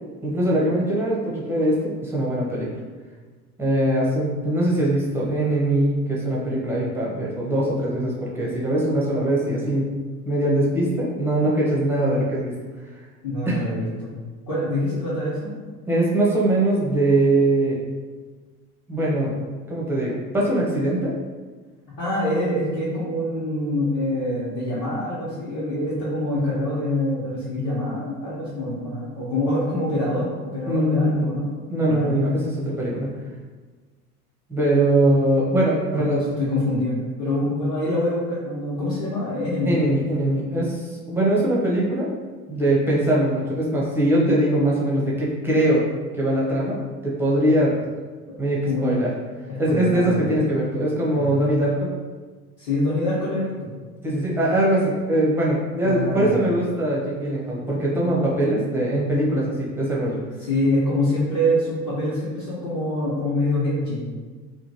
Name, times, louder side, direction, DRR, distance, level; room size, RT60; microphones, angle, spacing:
voice 1, 0.2-2.7 3.6-9.9 10.3-12.5 13.5-13.6 15.9-17.8 18.9-19.3 19.7-21.1 30.7-31.3 31.7-33.1 34.5-36.4 37.4-37.5 39.6-42.1 42.5-45.8 46.1-47.7 48.4-49.1 49.6-51.9 54.0-60.2, right 1 dB, 5° right, -5 dB, 0.6 m, -22 dB
voice 2, 13.2-14.2 14.5-15.6 22.0-31.5 31.8-32.3 35.9-36.9 37.2-39.7 48.6-49.0 49.5-50.3 51.1-51.4 52.6-53.8 55.8-56.4 60.4-64.0, left 1 dB, 40° left, -10 dB, 1.0 m, -25 dB
3.0 x 2.3 x 2.7 m, 1.4 s
figure-of-eight pair, 70°, 46 cm